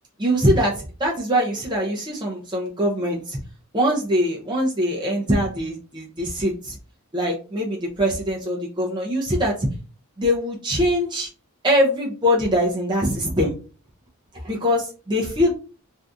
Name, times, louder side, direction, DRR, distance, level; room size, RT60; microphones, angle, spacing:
voice 1, 0.2-3.4 3.7-6.8 7.1-9.7 10.2-11.3 11.6-13.5 14.4-15.5, equal, 20° right, -2 dB, 0.5 m, -22 dB
2.6 x 2.4 x 3.5 m, 0.36 s
head